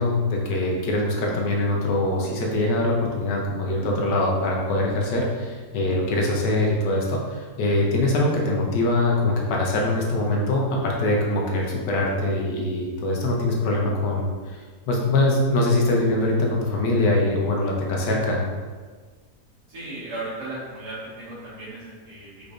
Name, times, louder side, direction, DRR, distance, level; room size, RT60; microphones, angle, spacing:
voice 1, 0.0-14.3 14.9-18.4, left 2 dB, 85° left, -1 dB, 1.5 m, -23 dB
voice 2, 19.7-22.5, right 2 dB, 65° right, -9 dB, 2.2 m, -36 dB
5.1 x 4.0 x 2.5 m, 1.5 s
omnidirectional pair, 1.8 m